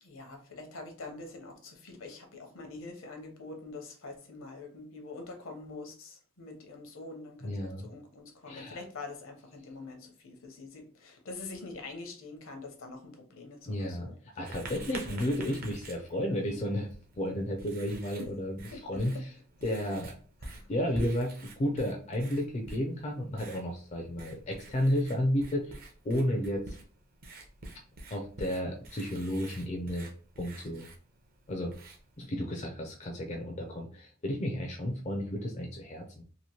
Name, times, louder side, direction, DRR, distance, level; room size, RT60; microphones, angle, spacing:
voice 1, 0.0-14.2 15.0-15.2 18.7-19.0 20.4-20.7 35.2-35.3, left 3 dB, 70° left, 4 dB, 0.7 m, -45 dB
voice 2, 7.4-7.9 8.5-8.8 13.7-14.1 14.4-16.9 17.2-19.1 19.6-20.2 20.7-25.8 26.0-26.8 28.1-30.1 30.4-30.9 31.5-31.7 32.2-36.2, equal, 30° left, 2 dB, 0.4 m, -32 dB
Writing, 14.5-32.3, right 2 dB, 45° right, 0.6 m, -48 dB
2.9 x 2.5 x 2.8 m, 0.42 s
head